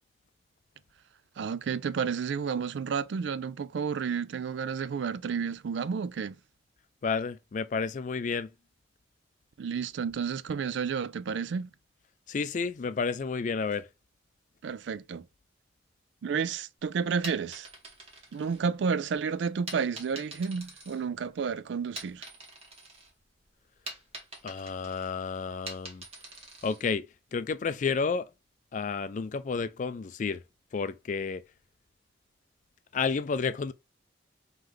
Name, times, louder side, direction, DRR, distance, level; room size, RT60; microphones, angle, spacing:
voice 1, 1.4-6.3 9.6-11.7 14.6-15.3 16.2-17.7 18.3-22.2, right 6 dB, 75° right, 0.4 m, -31 dB
voice 2, 7.0-8.5 12.3-13.9 24.4-26.0 26.6-27.1 27.3-28.3 28.7-30.4 30.7-31.4 32.9-33.7, left 5 dB, 40° left, 0.3 m, -31 dB
sound 1, 17.2-19.0 19.7-21.4 21.8-23.1 23.4-26.8, right 2 dB, 35° right, 1.5 m, -45 dB
3.2 x 3.2 x 3.7 m
head